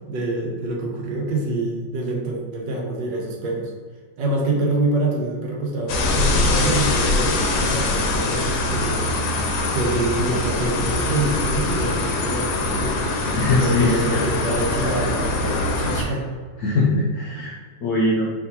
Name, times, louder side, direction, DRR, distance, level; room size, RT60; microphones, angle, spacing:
voice 1, 0.1-3.7 4.2-9.0 9.3-16.3, right 2 dB, 65° right, -1 dB, 1.3 m, -26 dB
sound 1, 5.9-16.0, left 2 dB, 70° left, 1.3 m, -23 dB
voice 2, 13.4-14.2 16.6-18.3, left 2 dB, 90° left, -4 dB, 0.8 m, -21 dB
4.6 x 3.5 x 2.8 m, 1.5 s
omnidirectional pair, 2.4 m